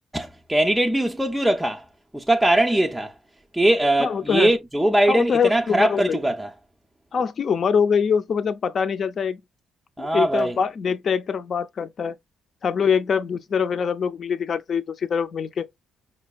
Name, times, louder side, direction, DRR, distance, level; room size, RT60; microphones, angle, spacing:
voice 1, 0.1-1.8 2.1-3.1 3.5-6.5 10.0-10.5, right 1 dB, 5° right, 0.4 m, -21 dB
voice 2, 4.0-4.5 5.1-6.2 7.1-9.4 10.0-12.2 12.6-15.7, left 6 dB, 55° left, 0.5 m, -24 dB
5.1 x 2.3 x 2.3 m
cardioid pair, 90°, 0 cm